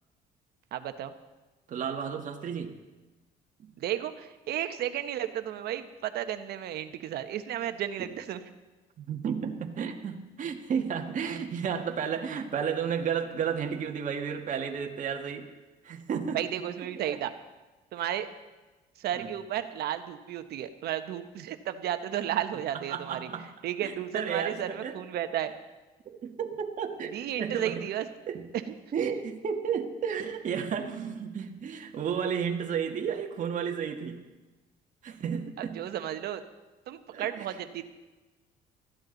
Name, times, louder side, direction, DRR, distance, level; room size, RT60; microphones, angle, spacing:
voice 1, 0.7-1.1 3.8-8.4 11.3-11.4 16.3-17.3 17.9-18.3 19.0-25.5 27.1-28.0 28.7-28.8 35.6-36.4 36.9-37.8, right 11 dB, 70° right, 9 dB, 1.2 m, -33 dB
voice 2, 1.7-2.8 3.6-3.7 8.0-8.1 9.0-15.5 15.8-16.4 17.0-17.2 19.2-19.3 22.9-23.5 23.8-24.9 26.1-27.8 28.3-28.4 28.9-34.2 35.0-35.8 37.1-37.5, right 7 dB, 50° right, 3 dB, 1.9 m, -32 dB
20.0 x 14.5 x 4.0 m, 1.2 s
cardioid pair, 110°, 17 cm